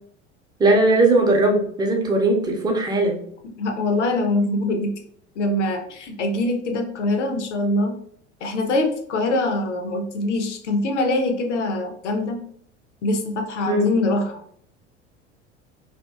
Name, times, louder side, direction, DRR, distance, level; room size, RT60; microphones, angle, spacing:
voice 1, 0.6-3.2 13.7-13.9, right 2 dB, 10° right, 1 dB, 0.5 m, -19 dB
voice 2, 3.6-4.9 5.4-7.9 8.4-12.4 13.0-14.4, left 2 dB, 75° left, 5 dB, 0.6 m, -23 dB
2.7 x 2.5 x 2.3 m, 0.64 s
figure-of-eight pair, 75°, 36 cm